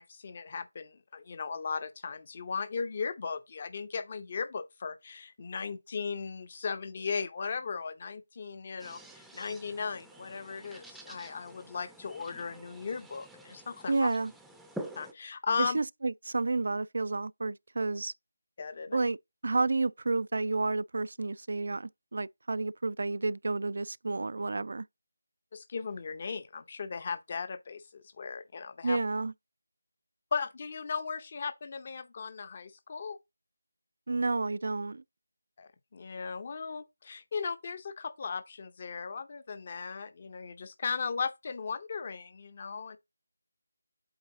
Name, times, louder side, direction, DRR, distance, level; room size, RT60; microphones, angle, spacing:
voice 1, 0.0-14.1 15.0-15.8 18.6-19.1 25.5-29.0 30.3-33.2 35.6-43.0, left 5 dB, 35° left, 0.8 m, -37 dB
sound 1, 8.8-15.1, right 1 dB, ahead, 0.6 m, -48 dB
voice 2, 13.9-14.3 15.6-18.1 18.9-19.2 19.4-24.8 28.8-29.3 34.1-35.0, right 3 dB, 60° right, 0.3 m, -30 dB
8.1 x 3.9 x 3.7 m
figure-of-eight pair, 160°, 0 cm